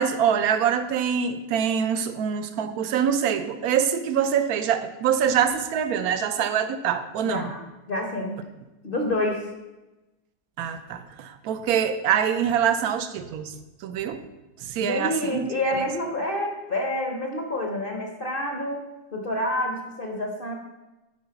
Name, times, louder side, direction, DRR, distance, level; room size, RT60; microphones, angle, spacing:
voice 1, 0.0-7.5 10.6-13.5 13.8-14.2 14.6-15.8, right 8 dB, 70° right, 10 dB, 1.0 m, -25 dB
voice 2, 7.2-7.6 7.9-8.4 8.8-9.4 14.8-18.8 19.1-20.5, left 1 dB, 40° left, 1 dB, 0.8 m, -28 dB
9.5 x 4.0 x 5.8 m, 1.1 s
omnidirectional pair, 1.9 m